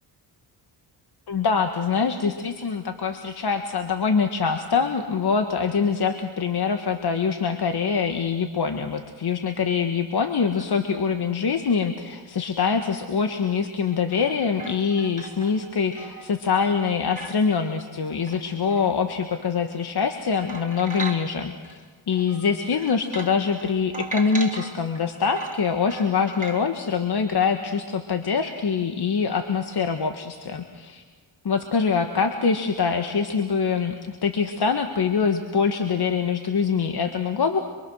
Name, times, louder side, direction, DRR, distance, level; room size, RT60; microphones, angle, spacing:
voice 1, 1.3-21.8 22.1-31.0 31.4-37.6, left 5 dB, 55° left, 6 dB, 1.7 m, -24 dB
sound 1, 13.9-19.6 20.0-20.1 20.3-21.8 22.1-26.7, right 3 dB, 15° right, 3.6 m, -38 dB
26.5 x 24.0 x 6.5 m, 1.5 s
cardioid pair, 60°, 46 cm